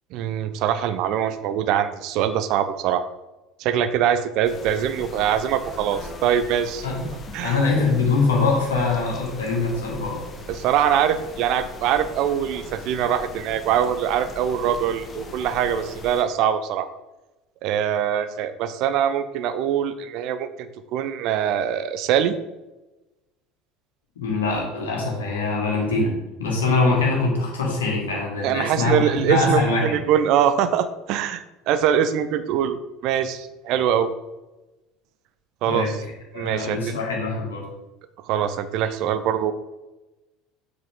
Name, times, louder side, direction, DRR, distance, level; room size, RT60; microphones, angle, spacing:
voice 1, 0.1-3.0 3.6-6.9 7.3-7.6 10.5-16.9 17.6-22.4 28.4-34.1 35.6-36.0 36.3-36.8 38.3-39.5, right 9 dB, 55° right, 11 dB, 0.6 m, -23 dB
sound 1, 4.4-16.2, left 2 dB, 30° left, 1.2 m, -40 dB
voice 2, 7.4-10.2 24.2-26.1 26.4-29.0 29.3-30.0 35.7-35.9 36.3-37.6, left 3 dB, 75° left, -1 dB, 2.1 m, -23 dB
7.4 x 6.0 x 3.7 m, 1.0 s
figure-of-eight pair, 70°, 0 cm